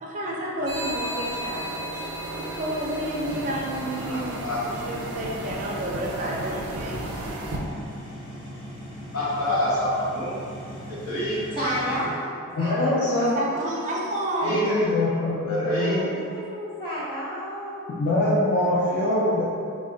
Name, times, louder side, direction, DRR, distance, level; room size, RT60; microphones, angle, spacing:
voice 1, 0.0-7.0 7.3-7.5 13.3-14.6, right 1 dB, 35° right, -3 dB, 0.4 m, -31 dB
sound 1, 0.7-7.6, right 1 dB, 90° right, 0.5 m, -34 dB
sound 2, 3.2-12.0, equal, 5° left, 0.9 m, -39 dB
voice 2, 4.0-4.6 9.1-10.3 11.0-11.4 14.4-14.6 15.4-16.0, equal, 70° left, -9 dB, 1.1 m, -26 dB
voice 3, 11.5-13.6 15.8-17.8, equal, 20° left, -12 dB, 1.3 m, -32 dB
voice 4, 12.5-13.4 14.4-16.0 17.9-19.4, left 1 dB, 50° left, -10 dB, 0.5 m, -24 dB
3.5 x 2.1 x 3.8 m, 2.4 s
head